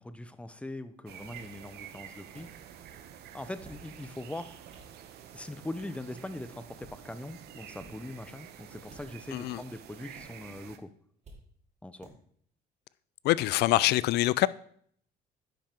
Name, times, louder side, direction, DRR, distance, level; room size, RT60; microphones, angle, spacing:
voice 1, 0.0-2.5 3.3-4.6 5.3-10.9 11.8-12.1, left 1 dB, 5° left, 0.6 m, -41 dB
sound 1, 1.1-10.8, right 9 dB, 70° right, 0.8 m, -49 dB
sound 2, 1.4-1.5 2.3-2.4 3.4-3.9 4.4-4.9 5.8-6.0 6.7-7.0 7.7-7.9 8.8-9.3 10.1-10.2 11.2-11.4 12.0-12.1, right 2 dB, 45° right, 2.6 m, -52 dB
voice 2, 9.3-9.6 13.2-14.5, left 17 dB, 75° left, 0.4 m, -25 dB
9.9 x 5.7 x 4.4 m
cardioid pair, 110°, 17 cm